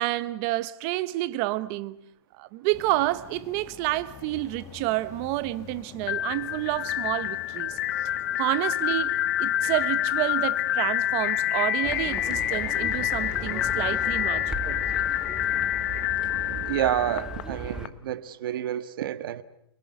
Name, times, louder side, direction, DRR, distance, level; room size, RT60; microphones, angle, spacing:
voice 1, 0.0-2.0 2.4-7.8 8.4-14.8, right 17 dB, 30° right, 1.0 m, -29 dB
sound 1, 2.7-14.0, left 9 dB, 20° left, 1.2 m, -47 dB
sound 2, 6.0-17.9, left 12 dB, 45° left, 1.0 m, -27 dB
Livestock farm animals working animals, 11.8-17.9, right 2 dB, 5° right, 1.2 m, -38 dB
voice 2, 16.4-19.4, right 11 dB, 55° right, 1.4 m, -29 dB
29.0 x 23.0 x 8.1 m
hypercardioid pair, 160°, 14 cm